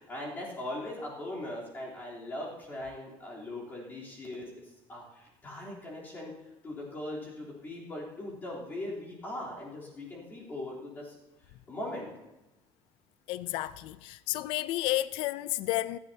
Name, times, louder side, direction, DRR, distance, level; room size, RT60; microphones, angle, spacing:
voice 1, 0.0-6.3 6.6-11.1 11.7-12.1, left 1 dB, 20° left, 3.5 m, -40 dB
voice 2, 13.3-16.0, left 16 dB, 65° left, 0.5 m, -31 dB
26.0 x 11.0 x 2.8 m
cardioid pair, 180°, 10 cm